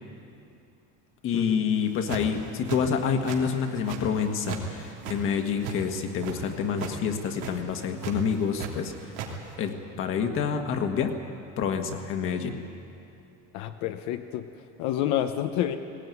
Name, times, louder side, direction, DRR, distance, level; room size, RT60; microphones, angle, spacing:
voice 1, 1.2-8.9 9.6-11.2 11.6-12.6, left 6 dB, 40° left, 5 dB, 1.5 m, -28 dB
sound 1, 1.8-2.3 2.7-3.4 3.7-4.7 4.9-6.4 6.7-6.9 7.2-7.5 8.0-8.7 9.0-9.3, right 7 dB, 90° right, 3.2 m, -36 dB
voice 2, 13.5-14.5 14.8-15.8, left 11 dB, 65° left, 7 dB, 0.9 m, -28 dB
18.0 x 18.0 x 9.4 m, 2.6 s
cardioid pair, 170°, 31 cm